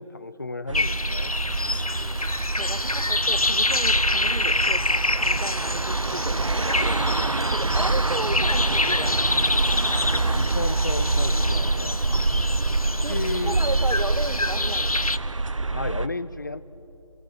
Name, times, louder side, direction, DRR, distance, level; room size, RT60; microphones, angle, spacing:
voice 1, 0.0-1.3 7.9-8.0 10.3-12.0 13.1-13.6 15.7-16.6, left 3 dB, 35° left, 16 dB, 0.6 m, -33 dB
sound 1, 0.7-15.2, left 2 dB, 90° left, 0.8 m, -27 dB
sound 2, 0.7-16.1, right 3 dB, 60° right, 1.0 m, -26 dB
voice 2, 1.9-2.2 2.5-7.1 7.5-9.4 12.3-12.5 13.0-15.1, right 2 dB, 75° right, 14 dB, 1.4 m, -34 dB
30.0 x 19.0 x 8.9 m, 2.8 s
figure-of-eight pair, 160°, 18 cm